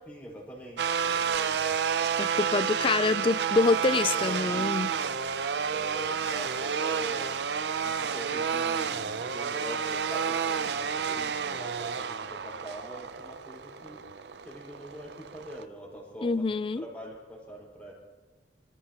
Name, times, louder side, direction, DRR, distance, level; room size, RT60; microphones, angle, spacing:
voice 1, 0.0-1.7 4.1-5.0 5.7-7.4 7.8-14.0 14.4-17.9, right 1 dB, 10° left, 5.0 m, -43 dB
sound 1, 0.8-15.6, right 7 dB, 70° right, 0.5 m, -30 dB
voice 2, 2.2-4.9 16.2-16.8, left 3 dB, 30° left, 0.4 m, -26 dB
27.0 x 14.5 x 2.9 m
head